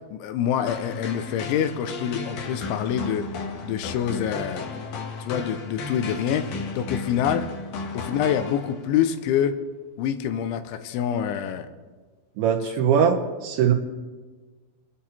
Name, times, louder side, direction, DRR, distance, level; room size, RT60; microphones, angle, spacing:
voice 1, 0.1-3.3 3.6-4.6 5.2-7.5 7.9-9.6 10.0-11.7, left 9 dB, 90° left, 8 dB, 3.3 m, -26 dB
sound 1, 0.7-9.0, left 4 dB, 65° left, 2.5 m, -34 dB
voice 2, 12.4-13.7, right 8 dB, 80° right, 3 dB, 3.1 m, -21 dB
25.5 x 9.0 x 4.4 m, 1.4 s
omnidirectional pair, 5.3 m